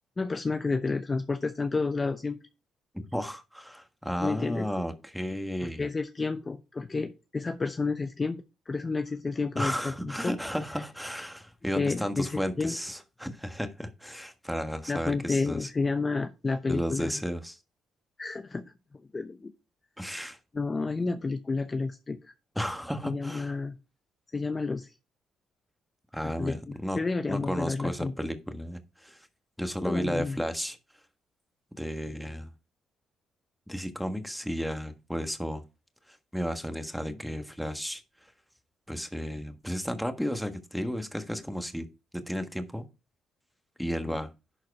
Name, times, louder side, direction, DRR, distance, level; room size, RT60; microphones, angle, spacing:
voice 1, 0.2-2.4 4.2-4.7 5.6-10.3 11.8-12.8 14.9-17.2 18.2-18.6 19.1-19.5 20.5-22.3 23.0-23.8 24.3-24.9 26.2-28.1 29.8-30.4, left 3 dB, 30° left, 0.7 m, -30 dB
voice 2, 2.9-5.9 9.6-15.7 16.7-17.6 20.0-20.4 22.5-23.5 26.1-27.0 27.3-29.3 29.6-30.8 31.8-32.5 33.7-35.6 36.1-38.0 38.9-41.9 42.1-42.9 43.8-44.3, equal, ahead, 1.4 m, -33 dB
11.0 x 4.7 x 4.7 m
cardioid pair, 90°, 0 cm